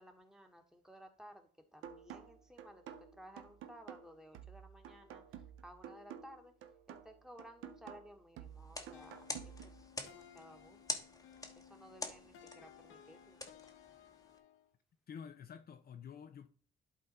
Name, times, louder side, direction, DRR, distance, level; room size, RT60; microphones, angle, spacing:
voice 1, 0.0-6.5 6.9-11.0 11.5-13.4, equal, 5° right, 1.6 m, -57 dB
sound 1, 1.8-9.8, right 9 dB, 90° right, 0.8 m, -52 dB
sound 2, 8.6-14.4, left 2 dB, 15° left, 1.2 m, -47 dB
sound 3, 8.9-14.7, left 8 dB, 80° left, 0.9 m, -59 dB
voice 2, 15.1-16.5, left 7 dB, 50° left, 0.7 m, -49 dB
11.5 x 4.0 x 4.2 m
cardioid pair, 90°, 20 cm